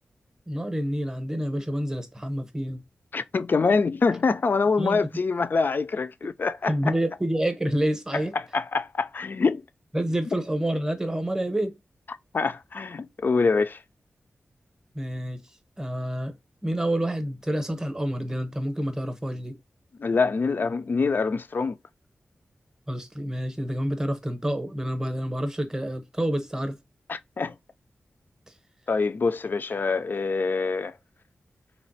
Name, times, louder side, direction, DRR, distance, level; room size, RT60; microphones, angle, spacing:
voice 1, 0.5-2.8 4.8-5.1 6.7-8.3 9.9-11.8 14.9-15.4 15.8-16.3 16.6-19.6 22.9-26.8, right 1 dB, 15° right, 0.7 m, -28 dB
voice 2, 3.1-6.9 8.5-9.6 12.3-13.8 20.0-21.8 27.1-27.5 28.9-30.9, left 4 dB, 50° left, 0.3 m, -25 dB
3.1 x 2.5 x 2.6 m
cardioid pair, 60°, 4 cm